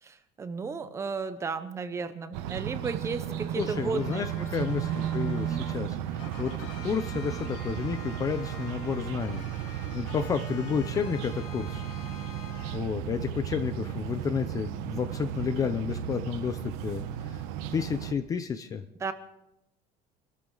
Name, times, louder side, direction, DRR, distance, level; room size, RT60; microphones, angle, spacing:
voice 1, 0.0-4.3 4.6-4.8 5.5-5.7 19.0-19.1, right 5 dB, 15° right, 11 dB, 0.9 m, -34 dB
sound 1, 2.3-18.1, right 10 dB, 85° right, 1.1 m, -34 dB
sound 2, 3.2-5.8 6.2-12.8, left 6 dB, 85° left, 5.0 m, -47 dB
voice 2, 3.6-11.8 12.7-17.4 17.7-18.8, left 6 dB, 20° left, 10 dB, 0.6 m, -31 dB
26.5 x 13.5 x 3.9 m, 0.88 s
cardioid pair, 175°, 16 cm